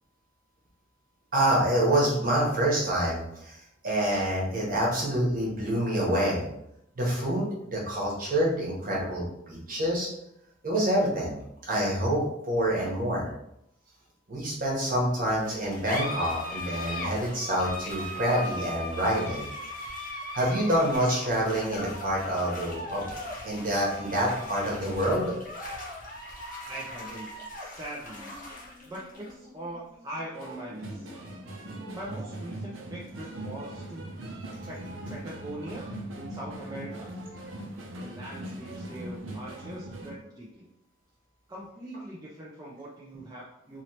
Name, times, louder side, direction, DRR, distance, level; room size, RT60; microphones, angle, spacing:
voice 1, 1.3-6.4 7.0-10.1 10.6-11.4 11.6-13.3 14.3-19.5 20.3-23.1 23.4-25.3, right 1 dB, 45° right, -4 dB, 1.0 m, -27 dB
sound 1, 15.4-32.4, left 1 dB, 40° left, 0.8 m, -39 dB
voice 2, 26.7-27.3 27.6-28.4 28.8-31.1 31.9-34.2 34.7-34.8 35.1-35.9 36.2-37.2 38.0-40.7 41.5-43.8, right 1 dB, 20° right, -5 dB, 0.4 m, -41 dB
sound 2, 30.3-40.1, right 1 dB, 75° right, 0.6 m, -40 dB
3.0 x 2.9 x 2.8 m, 0.79 s
head